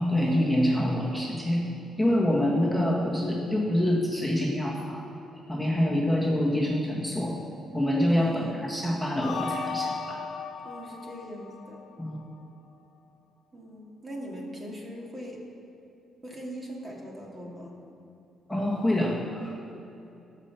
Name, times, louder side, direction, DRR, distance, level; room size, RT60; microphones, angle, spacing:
voice 1, 0.0-1.6 2.0-5.0 5.5-7.4 7.7-10.2 12.0-12.2 18.5-19.5, left 1 dB, ahead, -3 dB, 1.6 m, -26 dB
voice 2, 8.1-8.6 10.6-11.8 13.5-15.5 16.2-17.8, equal, 25° right, -1 dB, 2.1 m, -40 dB
sound 1, 9.2-12.3, left 5 dB, 65° left, 1.0 m, -36 dB
13.5 x 5.8 x 6.8 m, 2.8 s
cardioid pair, 90°, 0 cm